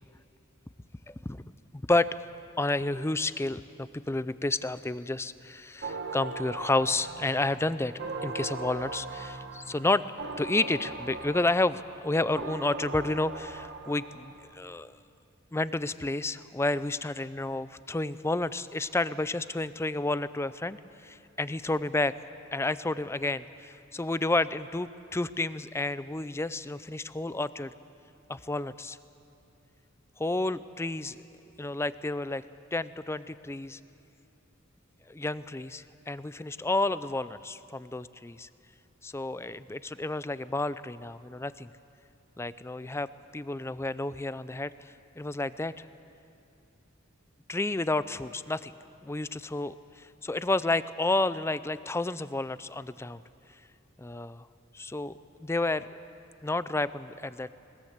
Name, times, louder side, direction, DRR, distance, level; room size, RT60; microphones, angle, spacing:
voice 1, 1.1-1.4 1.7-2.1 2.6-7.9 8.2-10.0 10.4-15.0 15.5-22.1 22.5-27.7 28.3-29.0 30.2-31.2 31.6-32.4 32.7-33.8 35.1-38.5 39.0-41.7 42.4-45.9 47.5-48.7 49.0-53.2 54.0-54.5 54.7-55.9 56.4-57.6, left 2 dB, 15° left, 15 dB, 0.4 m, -30 dB
sound 1, 5.8-14.5, right 3 dB, 55° right, 1.2 m, -39 dB
21.0 x 21.0 x 8.0 m, 2.6 s
head